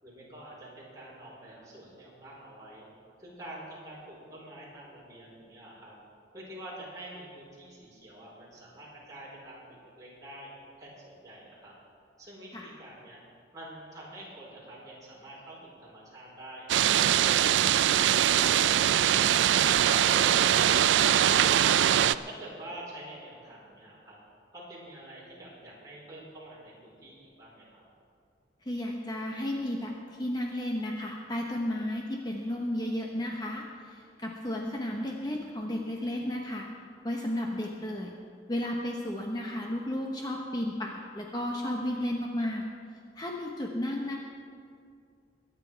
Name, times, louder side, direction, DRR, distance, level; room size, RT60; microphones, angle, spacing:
voice 1, 0.0-2.9 3.2-5.9 6.3-10.5 10.8-11.7 12.2-13.2 13.5-16.7 22.2-24.2 24.5-27.8, right 1 dB, 20° right, -6 dB, 4.3 m, -47 dB
sound 1, 16.7-22.1, right 10 dB, 85° right, 0.4 m, -22 dB
voice 2, 28.6-36.7 37.0-38.1 38.5-42.6 43.2-44.2, left 1 dB, 25° left, 0 dB, 0.9 m, -33 dB
22.0 x 9.4 x 4.6 m, 2.3 s
head